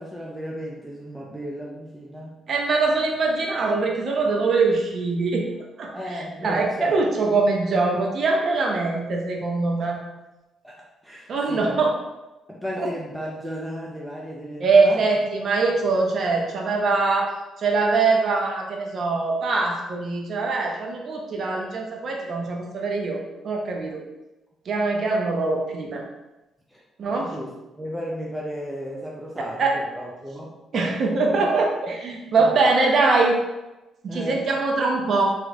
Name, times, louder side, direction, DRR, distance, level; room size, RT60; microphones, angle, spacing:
voice 1, 0.0-2.4 5.9-7.0 10.6-11.9 12.5-15.1 26.7-26.8 27.1-27.5 27.8-30.6 31.4-31.5 32.4-32.5 34.1-34.5, equal, ahead, -4 dB, 0.6 m, -34 dB
voice 2, 2.5-5.4 5.8-10.0 11.3-11.9 12.8-12.9 14.6-24.0 24.7-26.0 27.0-27.3 29.4-29.7 30.7-33.4 34.0-35.3, right 3 dB, 55° right, 0 dB, 0.8 m, -23 dB
3.2 x 3.2 x 3.7 m, 1.0 s
cardioid pair, 90°, 0 cm